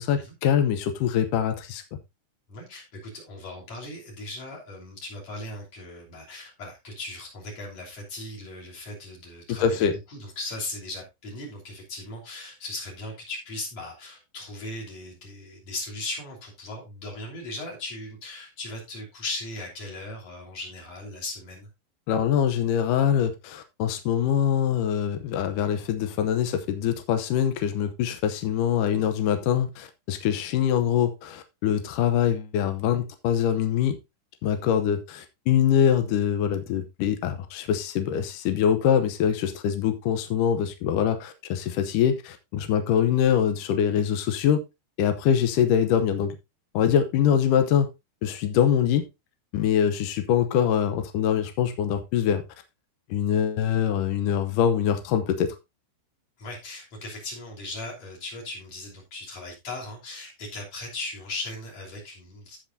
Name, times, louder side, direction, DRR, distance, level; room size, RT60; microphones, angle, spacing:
voice 1, 0.0-1.8 9.6-9.9 22.1-34.0 34.4-44.6 45.0-46.4 46.7-47.9 48.2-49.1 49.5-52.4 53.1-55.6, left 9 dB, 85° left, 1.8 m, -24 dB
voice 2, 2.5-21.7 56.4-62.6, left 2 dB, 40° left, 3.8 m, -38 dB
15.5 x 5.6 x 2.6 m
omnidirectional pair, 4.8 m